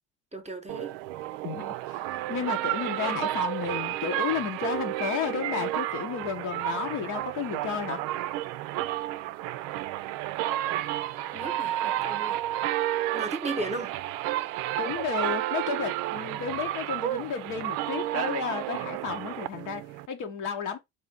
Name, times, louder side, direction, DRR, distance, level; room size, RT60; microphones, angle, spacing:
voice 1, 0.3-1.0 11.3-12.4 13.1-14.0, right 2 dB, 20° right, 1.0 m, -35 dB
sound 1, 0.7-20.1, right 14 dB, 70° right, 0.5 m, -31 dB
voice 2, 1.4-8.0 14.8-20.8, left 7 dB, 60° left, 1.0 m, -33 dB
4.1 x 2.7 x 3.5 m
hypercardioid pair, 55°, 35 cm